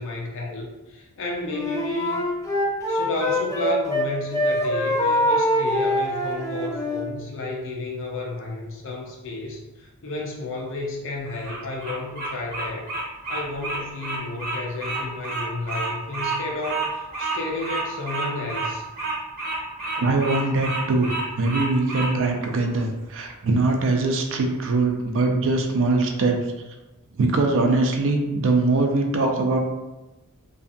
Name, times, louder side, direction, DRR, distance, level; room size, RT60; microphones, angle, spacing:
voice 1, 0.0-2.2 2.9-12.9 13.3-18.8, left 2 dB, 60° left, -1 dB, 0.6 m, -32 dB
Wind instrument woodwind instrument, 1.5-4.1 4.3-7.1, left 1 dB, 15° left, 0.4 m, -24 dB
Bird vocalization bird call bird song, 11.3-22.1, right 3 dB, 45° right, 1.0 m, -29 dB
voice 2, 20.0-21.1 21.4-26.4 27.2-29.6, right 3 dB, 60° right, 3 dB, 0.4 m, -22 dB
2.6 x 2.4 x 2.6 m, 1.1 s
head